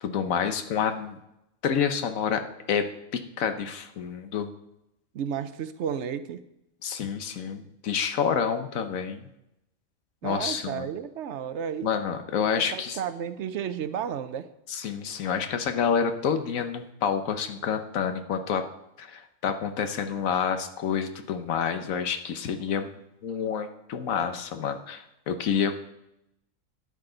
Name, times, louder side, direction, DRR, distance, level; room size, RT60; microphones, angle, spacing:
voice 1, 0.0-1.2 1.6-2.4 2.7-2.8 3.4-4.5 6.8-9.3 10.2-10.9 11.8-13.0 14.7-18.6 19.0-23.0 23.2-25.9, left 7 dB, 90° left, 8 dB, 1.3 m, -28 dB
voice 2, 5.1-6.4 10.2-11.9 12.6-14.5, right 8 dB, 65° right, 12 dB, 0.9 m, -32 dB
12.0 x 9.3 x 3.9 m, 0.86 s
omnidirectional pair, 1.4 m